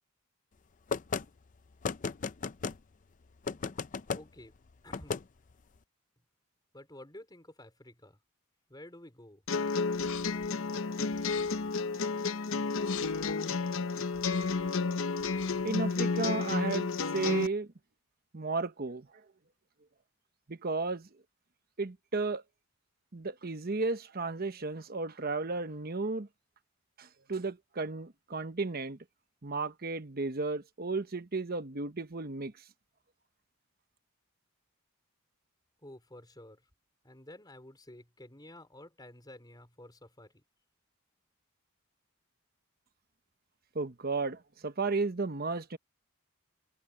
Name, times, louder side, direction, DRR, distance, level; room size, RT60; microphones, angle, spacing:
sound 1, 0.9-1.2 1.8-2.8 3.5-4.2 4.9-5.2, left 5 dB, 35° left, 0.5 m, -34 dB
voice 1, 4.1-4.5 4.8-5.2 6.7-8.2 8.7-9.4 35.8-36.7 37.0-40.4, left 1 dB, 20° left, 4.7 m, -51 dB
sound 2, 9.5-17.5, left 4 dB, 65° left, 0.8 m, -31 dB
sound 3, 9.9-10.5 11.1-11.7 12.8-13.3 14.1-14.7 15.2-15.7, left 9 dB, 80° left, 4.3 m, -47 dB
voice 2, 15.6-16.9 17.1-17.7 18.3-19.1 20.5-21.1 21.8-22.4 23.1-26.3 27.0-29.0 29.4-32.5 43.7-45.8, right 3 dB, 45° right, 1.0 m, -33 dB
head